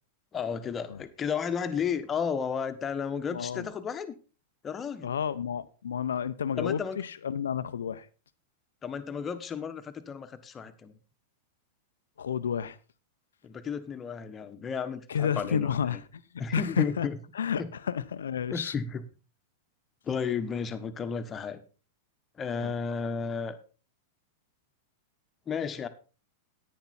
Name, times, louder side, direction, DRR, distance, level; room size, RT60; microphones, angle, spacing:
voice 1, 0.3-4.2 4.6-5.1 6.6-7.0 8.8-10.9 13.4-16.0 16.4-17.2 17.6-17.7 18.5-19.0 20.0-21.6 22.4-23.6 25.5-25.9, left 6 dB, 25° left, 1.3 m, -33 dB
voice 2, 3.3-3.7 5.0-8.1 12.2-12.8 15.1-16.0 16.3-17.1 17.3-18.7 22.6-22.7, left 7 dB, 80° left, 0.6 m, -31 dB
10.5 x 9.4 x 4.2 m
hypercardioid pair, 100°, 0 cm